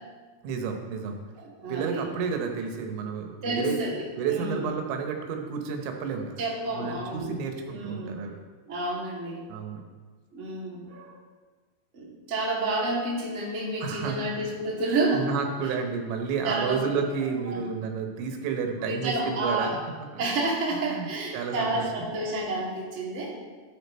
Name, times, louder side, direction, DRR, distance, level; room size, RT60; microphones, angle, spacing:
voice 1, 0.4-1.2 1.7-3.8 4.2-6.4 6.7-8.4 9.5-9.8 13.8-14.5 15.1-19.7 20.8-21.1 21.3-22.1, right 6 dB, 80° right, 4 dB, 3.4 m, -31 dB
voice 2, 1.4-2.0 3.4-4.7 6.4-7.4 7.6-8.2 8.7-9.4 10.3-11.1 11.9-15.3 16.4-16.8 17.5-17.6 18.8-19.8 20.2-23.3, right 2 dB, 55° right, -5 dB, 0.7 m, -30 dB
12.5 x 7.1 x 4.3 m, 1.4 s
omnidirectional pair, 5.3 m